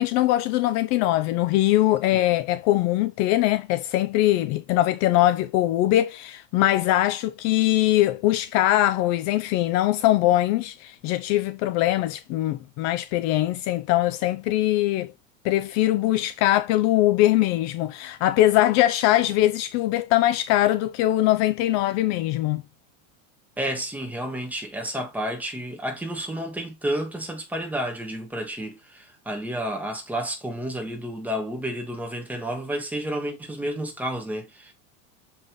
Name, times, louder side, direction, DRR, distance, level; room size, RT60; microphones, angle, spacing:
voice 1, 0.0-15.1 15.4-22.6, left 15 dB, 45° left, 0.5 m, -22 dB
voice 2, 23.6-34.7, right 1 dB, 5° right, 1.8 m, -31 dB
6.9 x 5.5 x 3.1 m
supercardioid pair, 150°, 40 cm